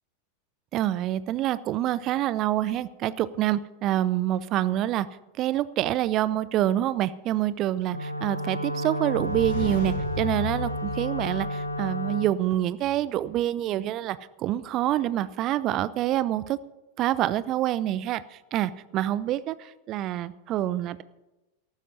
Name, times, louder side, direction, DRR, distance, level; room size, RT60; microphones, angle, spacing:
voice 1, 0.7-5.1 5.4-16.6 17.0-18.2 18.5-19.6 19.9-21.0, right 13 dB, 35° right, 17 dB, 0.6 m, -26 dB
Wind instrument woodwind instrument, 7.9-12.4, equal, 85° left, 0.9 m, -31 dB
sound 1, 9.1-12.0, left 6 dB, 55° left, 5.4 m, -35 dB
13.5 x 12.5 x 5.8 m, 0.99 s
figure-of-eight pair, 90°, 0 cm